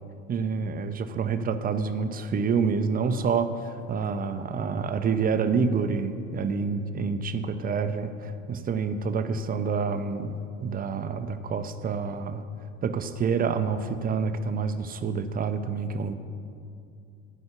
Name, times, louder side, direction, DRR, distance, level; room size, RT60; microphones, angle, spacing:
voice 1, 0.3-12.4 12.8-16.1, right 5 dB, 20° right, 10 dB, 0.6 m, -28 dB
9.4 x 5.8 x 8.2 m, 2.5 s
hypercardioid pair, 75°, 40 cm